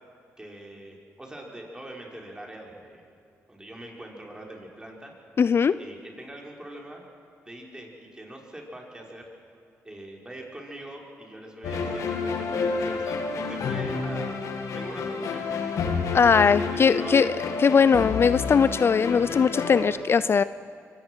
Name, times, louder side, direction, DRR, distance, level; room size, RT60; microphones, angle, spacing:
voice 1, 0.4-3.0 3.5-5.1 5.8-7.0 7.4-9.3 9.8-13.2 13.5-14.3 14.7-15.4 16.6-17.3, right 1 dB, 15° right, 0 dB, 4.9 m, -42 dB
voice 2, 5.4-5.7 16.1-17.3 17.6-20.4, left 6 dB, 45° left, 16 dB, 0.4 m, -20 dB
sound 1, 11.6-19.9, left 4 dB, 70° left, 2.3 m, -29 dB
24.0 x 18.0 x 6.2 m, 2.5 s
cardioid pair, 65°, 6 cm